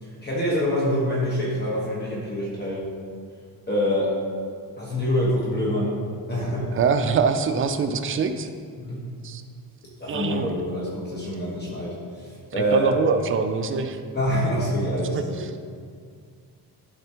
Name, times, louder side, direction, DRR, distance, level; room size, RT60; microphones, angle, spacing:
voice 1, 0.0-2.8 3.7-4.1 4.8-6.0 6.3-6.7 8.8-9.0 10.0-12.9 14.1-15.4, equal, 25° left, -6 dB, 1.3 m, -26 dB
voice 2, 6.7-8.5 9.2-9.4 10.1-10.5 12.7-14.0 15.1-15.2, right 5 dB, 35° right, 7 dB, 0.4 m, -23 dB
12.0 x 4.2 x 2.9 m, 2.1 s
cardioid pair, 145°, 38 cm